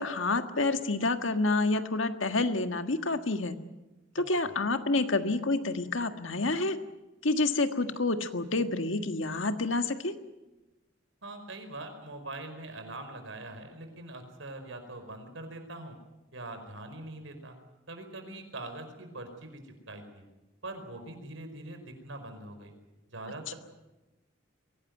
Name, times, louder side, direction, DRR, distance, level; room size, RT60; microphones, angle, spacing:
voice 1, 0.0-3.6 4.2-6.8 7.2-10.1, left 3 dB, 85° left, 8 dB, 1.7 m, -28 dB
voice 2, 4.1-4.5 11.2-16.0 16.3-17.5 17.9-20.2 20.6-22.7 23.1-23.5, right 2 dB, 80° right, 6 dB, 4.9 m, -43 dB
23.0 x 18.0 x 9.4 m, 1.0 s
head